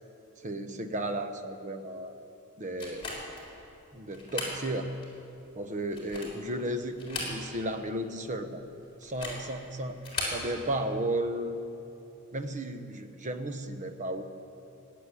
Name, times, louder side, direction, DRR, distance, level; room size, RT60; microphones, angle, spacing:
voice 1, 0.4-2.1 2.6-3.1 3.9-4.9 5.6-8.6 9.0-10.0 10.3-11.6 12.3-14.2, right 1 dB, 35° right, 8 dB, 0.9 m, -34 dB
sound 1, 2.8-3.5 4.1-4.6 5.0-5.1 5.8-6.5 6.9-7.7 8.0-8.1 9.0-9.5 10.0-10.4, left 2 dB, 25° left, 3.8 m, -36 dB
17.0 x 8.0 x 10.0 m, 2.9 s
head